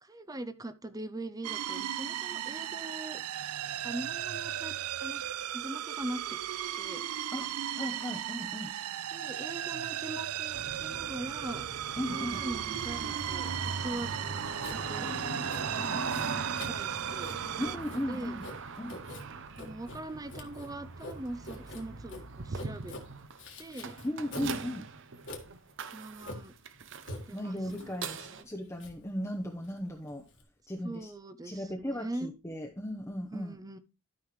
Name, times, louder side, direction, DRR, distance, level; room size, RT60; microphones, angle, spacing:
voice 1, 0.0-3.2 3.8-4.7 5.0-5.2 5.5-6.4 6.7-7.0 9.1-11.6 12.1-14.1 14.6-15.1 15.7-16.0 16.7-17.4 18.1-18.4 19.6-23.0 23.6-24.0 25.9-26.5 27.3-27.6 28.1-28.5 30.8-32.3 33.3-33.8, right 1 dB, 15° right, 13 dB, 0.6 m, -41 dB
sound 1, 1.4-17.8, right 11 dB, 85° right, 0.4 m, -36 dB
voice 2, 7.7-8.7 12.0-12.4 15.0-16.0 17.6-18.4 18.8-19.0 24.0-24.9 27.3-30.2 30.7-31.1 31.4-33.6, equal, 15° left, 0 dB, 0.8 m, -37 dB
sound 2, 10.5-28.4, right 4 dB, 55° right, 0.7 m, -40 dB
Writing, 11.3-30.4, left 1 dB, 55° left, 1.8 m, -47 dB
13.0 x 5.6 x 3.1 m, 0.28 s
head